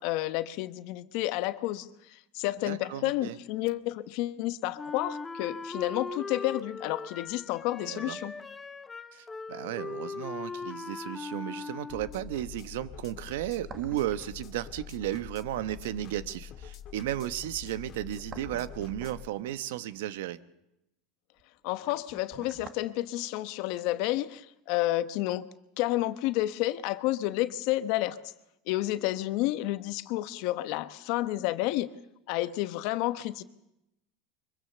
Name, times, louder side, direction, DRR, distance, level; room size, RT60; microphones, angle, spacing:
voice 1, 0.0-8.3 21.6-25.5 25.8-28.2 28.7-31.9 32.3-33.4, left 16 dB, 60° left, 12 dB, 1.1 m, -30 dB
voice 2, 2.7-3.4 7.8-8.2 9.1-20.4, right 13 dB, 85° right, 13 dB, 1.1 m, -34 dB
Wind instrument woodwind instrument, 4.8-12.3, left 4 dB, 15° left, 0.9 m, -39 dB
sound 1, 11.9-19.3, left 9 dB, 40° left, 1.9 m, -46 dB
sound 2, 13.5-14.4 14.6-14.7 17.9-19.6 21.4-22.9 23.2-23.3, right 6 dB, 30° right, 1.4 m, -48 dB
24.0 x 23.0 x 6.9 m, 0.86 s
supercardioid pair, 140°, 0 cm